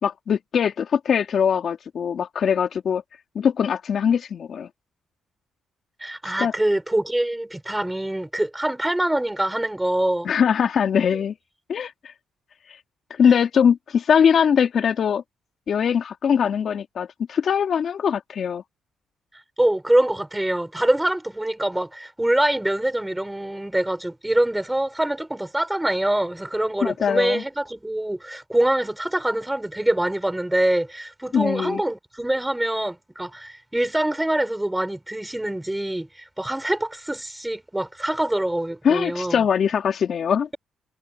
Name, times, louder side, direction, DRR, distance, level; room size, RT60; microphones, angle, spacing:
voice 1, 0.0-3.0 3.3-4.7 6.4-6.5 10.2-11.3 11.7-11.9 13.1-15.2 15.7-18.6 26.8-27.4 31.3-31.8 38.8-40.5, left 7 dB, 55° left, 2.7 m, -21 dB
voice 2, 6.0-10.3 19.6-39.4, right 1 dB, 10° right, 4.4 m, -24 dB
cardioid pair, 90°, 0 cm